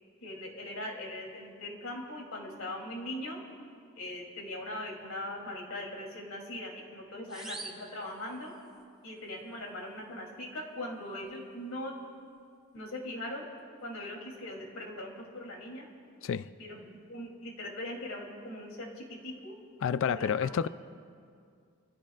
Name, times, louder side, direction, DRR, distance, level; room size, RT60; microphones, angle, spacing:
voice 1, 0.2-3.4 4.0-8.5 9.0-12.0 12.7-13.4 13.8-15.9 16.6-19.6 20.1-20.4, left 1 dB, 85° left, 3.0 m, -40 dB
sound 1, 7.3-8.8, right 2 dB, 5° right, 1.5 m, -46 dB
voice 2, 19.8-20.7, left 7 dB, 65° left, 0.3 m, -29 dB
26.5 x 15.5 x 2.4 m
head